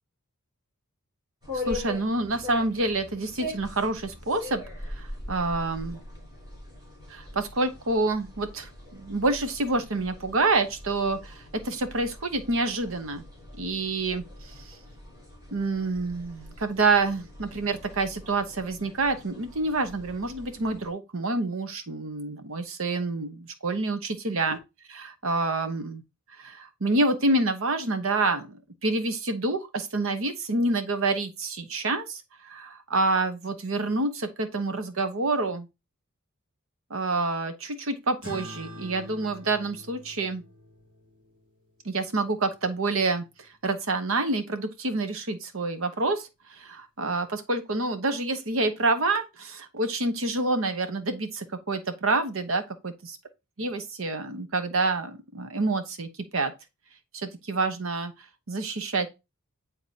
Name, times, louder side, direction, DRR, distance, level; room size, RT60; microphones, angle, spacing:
sound 1, 1.4-20.9, left 2 dB, 20° right, 3.1 m, -42 dB
voice 1, 1.5-4.6 4.9-6.0 7.1-13.2 13.6-14.8 15.5-24.6 24.9-26.0 26.3-35.7 36.9-40.4 41.8-53.2 53.6-56.5 57.1-58.1 58.5-59.1, right 2 dB, 65° right, 1.0 m, -28 dB
sound 2, 38.2-43.1, equal, 40° right, 3.2 m, -46 dB
9.4 x 3.8 x 2.8 m
head